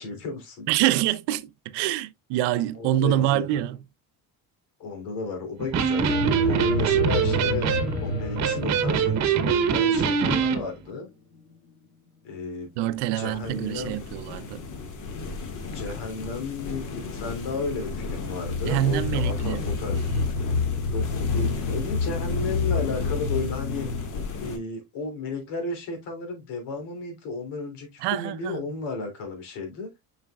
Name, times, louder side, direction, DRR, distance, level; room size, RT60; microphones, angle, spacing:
voice 1, 0.0-0.7 2.7-3.6 4.8-7.7 8.0-11.1 12.2-12.7 13.1-14.0 15.7-20.1 20.9-23.9 24.4-29.9, left 3 dB, 85° left, 3.3 m, -33 dB
voice 2, 0.7-3.8 12.8-14.6 18.6-20.3 28.0-28.6, right 13 dB, 90° right, 0.7 m, -26 dB
Electric guitar, 5.6-10.6, right 7 dB, 45° right, 1.0 m, -23 dB
sound 1, 6.0-11.0 17.0-24.1, left 4 dB, 70° left, 2.4 m, -29 dB
sound 2, 12.9-24.6, left 4 dB, 50° left, 1.8 m, -35 dB
7.2 x 5.7 x 2.3 m
cardioid pair, 170°, 39 cm